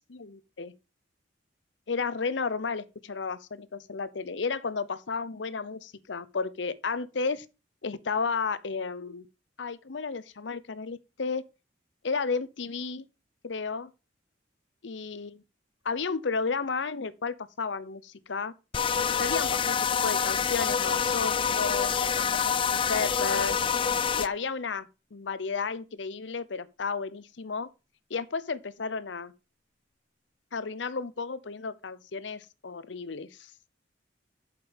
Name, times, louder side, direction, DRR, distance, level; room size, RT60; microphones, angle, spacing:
voice 1, 0.1-0.7 1.9-7.5 7.8-9.3 9.6-11.4 12.0-13.0 13.4-13.9 14.8-15.4 15.8-18.5 19.1-23.6 24.1-27.7 28.1-29.3 30.5-33.5, left 4 dB, 75° left, 0.7 m, -33 dB
sound 1, 18.7-24.3, left 7 dB, 30° left, 0.4 m, -26 dB
8.1 x 6.7 x 5.2 m
head